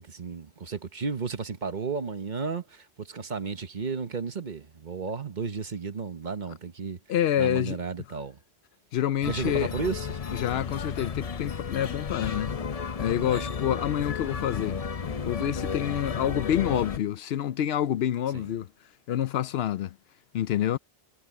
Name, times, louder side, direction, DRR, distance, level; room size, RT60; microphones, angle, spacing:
voice 1, 0.0-7.0 7.4-8.4 9.3-10.2 13.3-13.5 18.3-18.6, right 5 dB, 45° right, 1.1 m, -33 dB
voice 2, 7.1-7.8 8.9-9.7 10.3-12.6 13.0-14.8 15.3-18.7 19.1-20.0 20.3-20.8, left 11 dB, 75° left, 0.8 m, -27 dB
sound 1, 9.2-17.0, left 6 dB, 40° left, 0.7 m, -33 dB
omnidirectional pair, 1.1 m